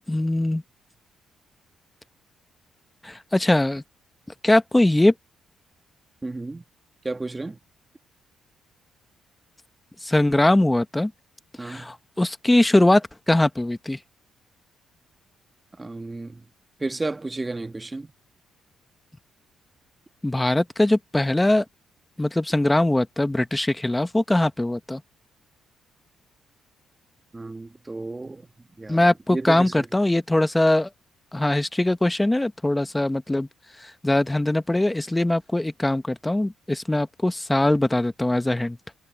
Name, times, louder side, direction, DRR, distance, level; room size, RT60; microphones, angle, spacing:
voice 1, 0.1-0.6 3.0-3.8 4.4-5.1 10.0-11.1 11.6-14.0 20.2-21.6 22.2-25.0 28.9-30.9 31.3-33.5 33.8-38.8, left 1 dB, 10° left, 1.2 m, -21 dB
voice 2, 6.2-6.6 7.0-7.6 11.6-11.9 15.7-16.5 16.8-18.1 27.3-29.9, right 2 dB, 20° right, 1.6 m, -33 dB
cardioid pair, 90°, 0 cm